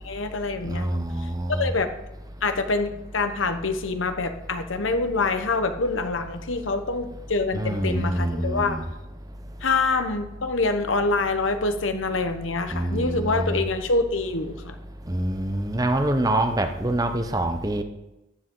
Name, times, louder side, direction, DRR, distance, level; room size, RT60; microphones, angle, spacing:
voice 1, 0.0-1.9 2.4-8.8 9.6-14.8, left 3 dB, 90° left, 8 dB, 1.1 m, -26 dB
voice 2, 0.6-1.7 7.5-8.9 12.7-13.6 15.1-17.8, right 1 dB, 20° right, 7 dB, 0.8 m, -25 dB
14.0 x 9.9 x 3.8 m, 0.95 s
head